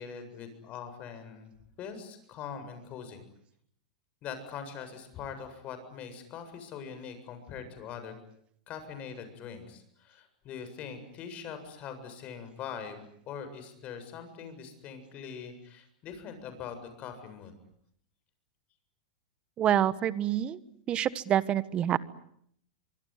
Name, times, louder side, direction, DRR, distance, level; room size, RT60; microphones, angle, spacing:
voice 1, 0.0-1.5 1.8-3.2 4.2-8.1 8.7-17.5, left 7 dB, 35° left, 9 dB, 7.5 m, -42 dB
voice 2, 19.6-20.6 20.9-22.0, right 11 dB, 30° right, 16 dB, 1.4 m, -27 dB
25.0 x 24.5 x 9.6 m, 0.70 s
supercardioid pair, 130°, 4 cm